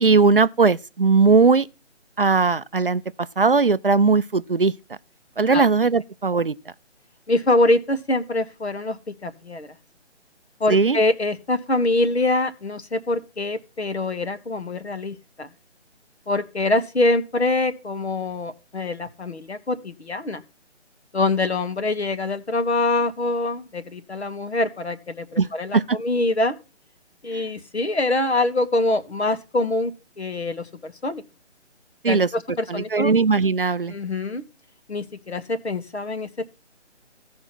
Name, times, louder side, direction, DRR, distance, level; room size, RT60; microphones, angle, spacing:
voice 1, 0.0-1.7 2.2-3.0 3.4-4.7 5.4-6.6 10.7-11.0 25.4-25.5 25.7-26.0 32.0-32.3 32.7-33.9, right 4 dB, 50° right, 0.5 m, -18 dB
voice 2, 7.3-9.7 10.6-15.5 16.3-20.4 21.1-26.5 27.2-29.9 30.2-31.2 32.0-33.1 33.9-34.4 34.9-36.4, left 2 dB, 65° left, 1.4 m, -24 dB
15.5 x 5.1 x 5.9 m
figure-of-eight pair, 150°, 35 cm